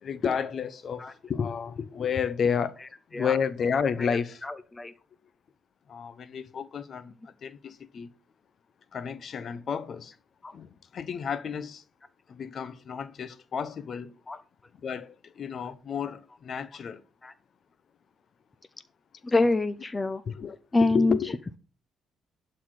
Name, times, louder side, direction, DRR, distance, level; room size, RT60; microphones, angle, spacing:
voice 1, 0.0-2.8 3.1-4.4 5.9-7.1 7.4-8.1 8.9-10.1 10.5-11.8 12.3-14.1 14.8-17.0 20.3-21.4, left 6 dB, 55° left, 0.9 m, -31 dB
voice 2, 4.0-4.6 14.3-14.4 17.2-17.3 19.2-20.2 20.7-21.5, left 2 dB, 25° left, 0.7 m, -26 dB
11.5 x 4.3 x 6.4 m
cardioid pair, 90°, 0 cm